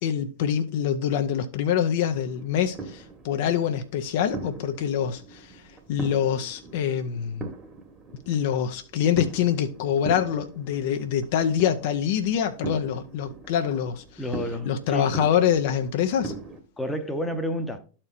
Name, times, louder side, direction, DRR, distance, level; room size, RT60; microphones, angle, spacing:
voice 1, 0.0-5.6 5.9-7.5 8.3-14.2 14.7-16.3, left 9 dB, 50° left, 0.6 m, -25 dB
sound 1, 2.1-16.6, right 4 dB, 20° right, 1.4 m, -40 dB
voice 2, 14.2-15.1 16.8-17.8, equal, 5° left, 0.9 m, -30 dB
13.0 x 4.3 x 2.6 m
figure-of-eight pair, 90°, 0 cm